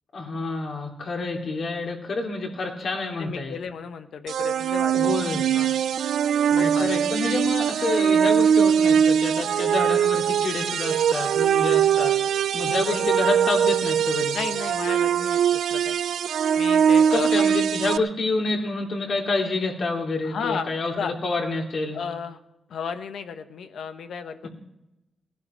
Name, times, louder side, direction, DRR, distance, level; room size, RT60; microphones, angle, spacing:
voice 1, 0.1-3.6 4.9-5.4 6.5-14.4 17.1-22.0 24.4-24.5, left 3 dB, 60° left, 0 dB, 3.0 m, -28 dB
voice 2, 3.2-5.1 5.5-5.8 6.6-7.0 12.9-13.2 14.3-16.0 16.6-17.5 20.2-21.1 21.9-22.4 22.7-24.5, left 6 dB, 80° left, 8 dB, 1.0 m, -33 dB
sound 1, 4.3-18.0, right 8 dB, 90° right, 0.4 m, -22 dB
18.0 x 11.5 x 4.4 m, 0.92 s
cardioid pair, 105°, 0 cm